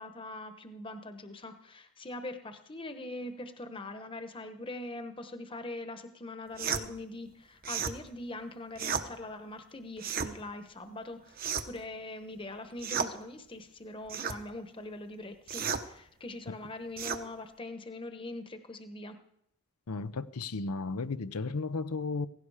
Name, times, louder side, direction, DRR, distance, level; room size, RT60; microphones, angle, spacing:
voice 1, 0.0-11.4 11.7-19.2, left 2 dB, 25° left, 1.1 m, -42 dB
sound 1, 6.6-6.8 7.6-8.0 8.7-9.1 10.0-10.3 11.4-11.8 12.8-13.1 14.1-14.4 15.5-15.8 17.0-17.2, right 6 dB, 40° right, 1.0 m, -33 dB
voice 2, 19.9-22.3, left 3 dB, 90° left, 0.7 m, -34 dB
17.0 x 16.5 x 4.9 m
head